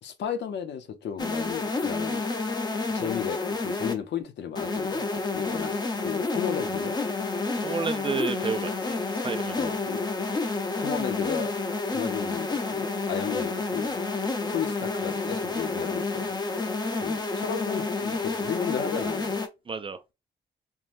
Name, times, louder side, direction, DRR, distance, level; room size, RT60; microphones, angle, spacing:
voice 1, 0.0-2.2 2.9-5.0 5.3-7.0 9.6-10.0 10.8-11.5 11.9-14.0 14.5-16.3 16.9-19.4, left 8 dB, 80° left, 0.8 m, -33 dB
sound 1, 1.2-3.9 4.6-19.5, left 3 dB, 25° left, 0.7 m, -29 dB
voice 2, 7.6-9.0 9.2-9.8 19.7-20.0, right 5 dB, 30° right, 0.4 m, -31 dB
3.7 x 3.1 x 2.5 m
wide cardioid pair, 140°, 18 cm